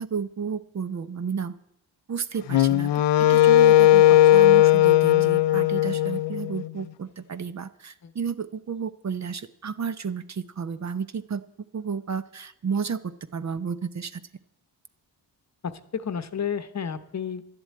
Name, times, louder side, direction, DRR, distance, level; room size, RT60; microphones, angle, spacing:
voice 1, 0.0-1.5 2.1-2.9 3.2-4.0 4.3-11.4 11.7-14.2, right 6 dB, 40° right, 13 dB, 0.8 m, -32 dB
Wind instrument woodwind instrument, 2.5-6.7, left 13 dB, 75° left, 0.6 m, -17 dB
voice 2, 4.1-4.5 8.0-8.1 15.6-17.4, left 7 dB, 40° left, 12 dB, 1.0 m, -32 dB
12.0 x 7.8 x 8.7 m, 0.80 s
cardioid pair, 70°, 43 cm